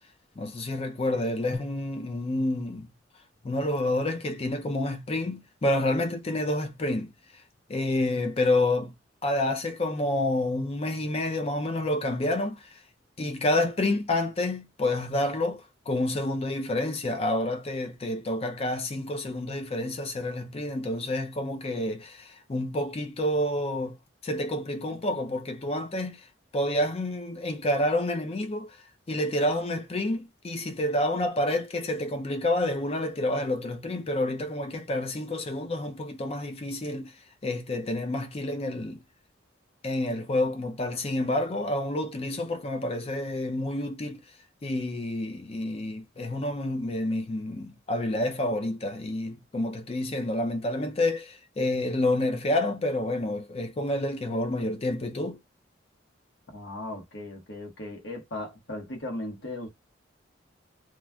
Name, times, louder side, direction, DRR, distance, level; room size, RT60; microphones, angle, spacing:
voice 1, 0.4-2.9 3.4-7.1 7.7-8.9 9.2-12.6 13.2-24.0 24.2-26.2 26.5-28.7 29.1-37.1 37.4-39.0 39.8-44.2 44.6-55.4, left 1 dB, 30° left, 0.4 m, -29 dB
voice 2, 56.5-59.7, left 1 dB, 70° left, 1.3 m, -37 dB
3.0 x 2.4 x 2.2 m
head